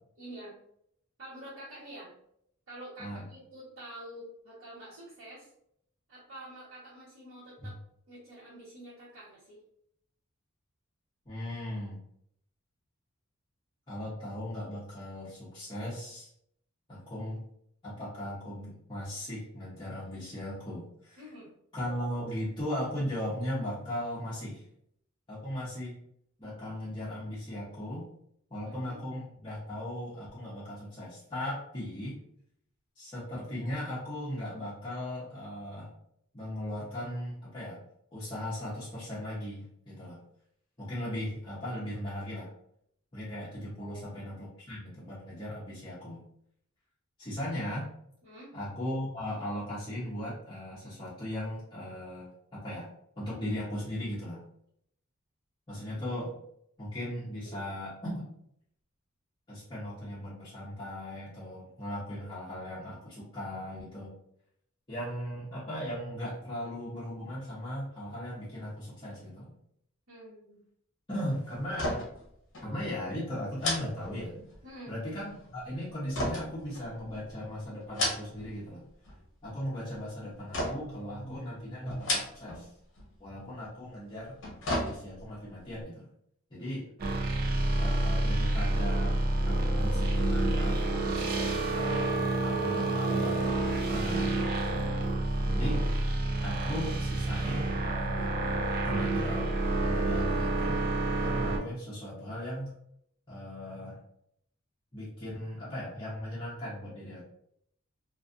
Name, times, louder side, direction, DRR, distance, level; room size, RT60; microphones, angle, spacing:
voice 1, 0.2-0.6 1.2-2.2 2.7-5.5 6.1-7.8 8.1-9.6 21.2-21.5 28.6-29.0 43.8-44.1 48.2-48.5 57.4-57.6 70.1-70.6 74.6-74.9, right 1 dB, 70° right, -12 dB, 1.1 m, -47 dB
voice 2, 11.3-12.0 13.9-16.3 16.9-17.4 17.8-21.3 21.7-24.6 25.3-26.0 26.4-28.1 28.5-32.2 33.0-35.9 36.3-37.8 38.1-40.2 40.8-42.5 43.1-46.2 47.2-47.9 48.5-52.9 53.2-54.4 55.7-56.3 56.8-58.3 59.5-64.2 64.9-69.5 71.1-72.1 72.6-74.5 74.9-78.9 79.4-82.7 83.2-84.4 84.7-86.1 86.5-86.8 87.8-89.1 89.4-92.1 92.4-94.3 95.4-95.9 96.4-98.4 98.8-99.5 99.8-100.8 101.2-102.8 103.3-104.0 104.9-107.2, equal, 25° left, -10 dB, 0.7 m, -37 dB
sound 1, 71.7-72.3 72.5-72.7 73.6-74.7 76.1-77.3 77.8-78.6 78.9-79.4 80.5-81.0 81.9-82.7 83.0-83.1 84.2-85.4 85.8-85.9, left 1 dB, 60° left, 0.7 m, -33 dB
sound 2, 87.0-101.6, right 2 dB, 45° right, 0.5 m, -28 dB
2.5 x 2.4 x 2.4 m, 0.71 s
head